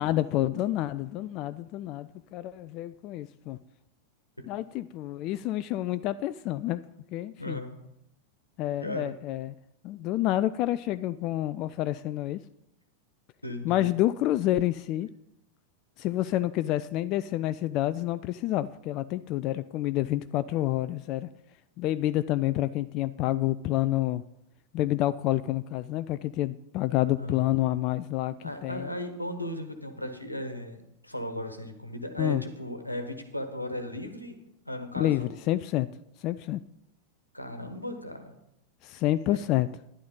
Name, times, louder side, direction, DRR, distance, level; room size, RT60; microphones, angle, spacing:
voice 1, 0.0-3.6 4.5-6.8 7.1-7.6 8.6-9.5 9.8-12.4 13.6-15.1 16.0-21.3 21.8-24.2 24.7-28.3 28.6-28.9 32.2-32.4 35.0-35.9 36.2-36.6 38.8-39.7, left 14 dB, 40° left, 14 dB, 0.3 m, -28 dB
voice 2, 7.4-7.8 8.8-9.2 13.4-13.9 27.2-27.5 28.4-34.4 34.6-35.3 37.3-38.3 39.3-39.4, left 1 dB, 85° left, 8 dB, 1.3 m, -36 dB
11.5 x 11.0 x 3.9 m, 0.83 s
figure-of-eight pair, 90°, 0 cm